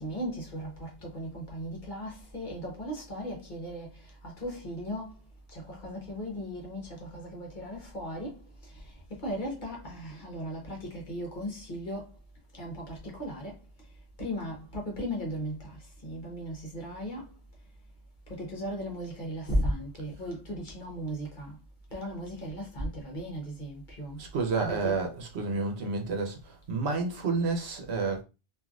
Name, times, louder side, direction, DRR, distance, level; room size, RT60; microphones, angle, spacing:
voice 1, 0.0-3.9 4.4-5.1 5.7-6.8 7.1-8.3 9.2-10.8 11.1-12.0 12.6-13.5 14.2-15.5 16.0-17.2 18.4-21.5 21.9-24.2 24.6-24.9, equal, 45° left, 1.1 m, -36 dB
voice 2, 24.2-26.4 26.7-28.2, right 4 dB, 70° right, 1.0 m, -30 dB
3.1 x 2.5 x 2.4 m
omnidirectional pair, 1.1 m